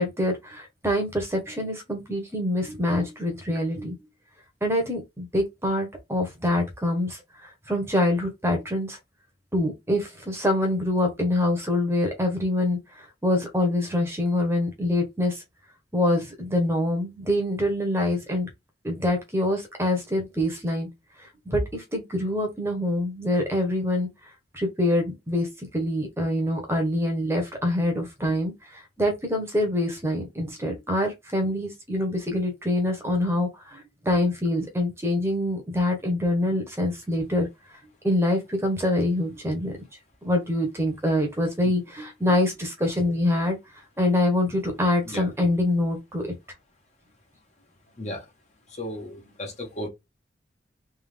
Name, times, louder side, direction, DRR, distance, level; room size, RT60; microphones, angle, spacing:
voice 1, 0.0-3.9 4.6-9.0 9.5-15.4 15.9-18.5 18.8-20.9 21.2-24.1 24.5-25.5 25.7-37.5 38.0-39.7 40.2-43.6 44.0-46.3, left 1 dB, 15° right, 1.1 m, -25 dB
voice 2, 48.7-49.9, left 1 dB, 40° left, 1.4 m, -35 dB
3.6 x 3.1 x 3.4 m
head